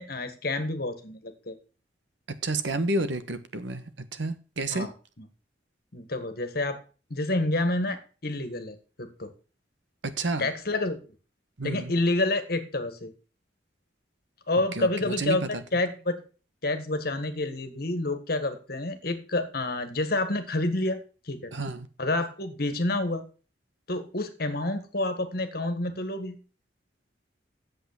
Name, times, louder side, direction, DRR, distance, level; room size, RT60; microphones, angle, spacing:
voice 1, 0.0-1.6 4.7-4.9 5.9-6.8 7.1-9.3 10.4-11.0 11.6-13.1 14.5-15.4 15.7-16.1 16.6-21.0 21.3-21.5 22.0-23.2 23.9-26.4, left 2 dB, 55° left, 1.7 m, -28 dB
voice 2, 2.3-3.8 4.1-4.9 10.0-10.5 11.6-11.9 14.7-15.6 21.5-21.9, right 2 dB, 85° right, 1.2 m, -30 dB
8.3 x 7.8 x 6.2 m
head